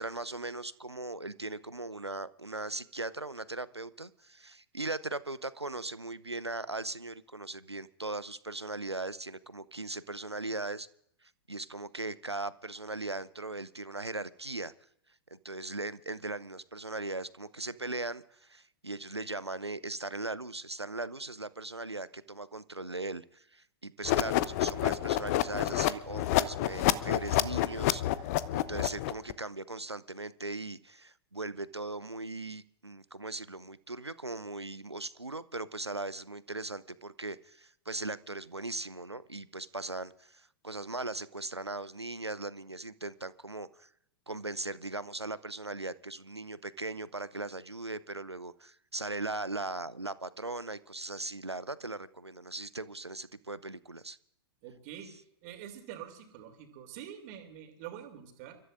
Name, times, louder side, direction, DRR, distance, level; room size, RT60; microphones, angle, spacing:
voice 1, 0.0-10.9 11.2-14.7 15.3-43.9 44.3-54.2, right 2 dB, 90° right, 18 dB, 0.7 m, -39 dB
sound 1, 24.0-29.3, left 14 dB, 40° left, 0.7 m, -28 dB
voice 2, 54.6-55.1 55.4-58.6, right 10 dB, 40° right, 5 dB, 3.0 m, -46 dB
30.0 x 14.0 x 2.6 m, 0.73 s
figure-of-eight pair, 105°, 14 cm